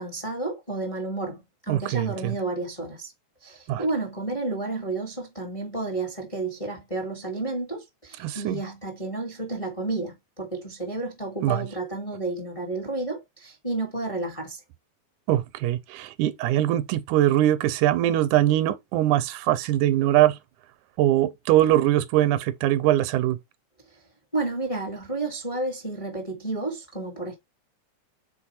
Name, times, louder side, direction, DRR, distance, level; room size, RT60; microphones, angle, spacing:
voice 1, 0.0-3.1 3.4-14.6 23.9-24.0 24.3-27.3, right 2 dB, 15° left, 1.1 m, -31 dB
voice 2, 1.7-2.4 3.7-3.8 8.2-8.6 11.4-11.7 15.3-20.4 21.0-23.4, right 13 dB, 90° right, 2.1 m, -22 dB
5.2 x 4.4 x 4.2 m
omnidirectional pair, 3.6 m